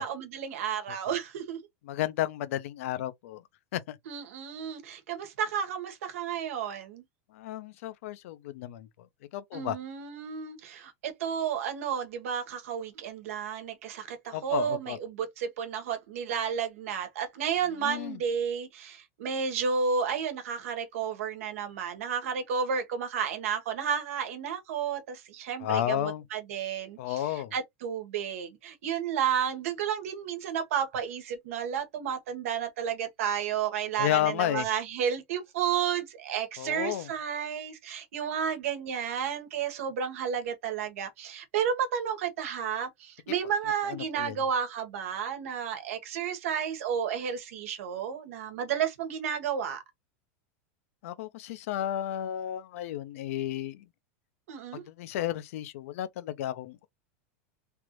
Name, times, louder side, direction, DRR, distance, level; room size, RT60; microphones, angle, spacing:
voice 1, 0.0-1.6 4.1-7.0 9.5-49.8 54.5-54.8, right 7 dB, 80° right, 1.2 m, -32 dB
voice 2, 1.9-3.4 3.7-4.0 7.3-8.9 9.3-9.8 14.3-15.0 17.8-18.2 25.6-26.2 27.0-27.5 34.0-34.7 36.6-37.1 43.9-44.4 51.0-53.8 54.7-56.9, left 12 dB, 75° left, 0.6 m, -32 dB
3.3 x 2.5 x 3.0 m
supercardioid pair, 130°, 8 cm